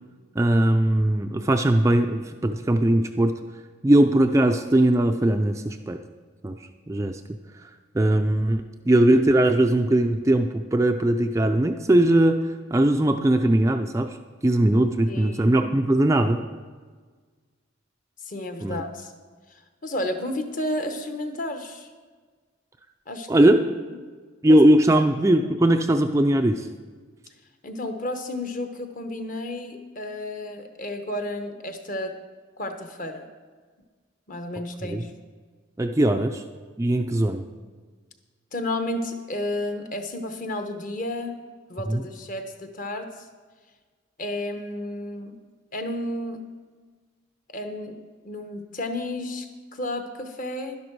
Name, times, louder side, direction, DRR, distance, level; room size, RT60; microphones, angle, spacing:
voice 1, 0.4-3.4 3.8-6.0 6.4-6.6 6.9-7.2 7.6-7.7 7.9-14.2 14.4-16.4 18.6-18.8 23.3-23.6 24.4-26.7 34.8-35.0 35.8-36.4 36.8-37.5 41.9-42.0, right 1 dB, 15° right, 5 dB, 0.3 m, -20 dB
voice 2, 15.1-15.5 18.3-19.1 19.5-21.9 23.1-23.3 24.5-24.6 27.6-32.2 32.6-33.3 34.3-35.1 38.5-41.3 41.7-43.3 44.2-45.4 45.7-46.4 47.5-48.0 48.2-50.8, left 1 dB, 40° left, 6 dB, 1.0 m, -32 dB
11.5 x 11.5 x 4.6 m, 1.5 s
head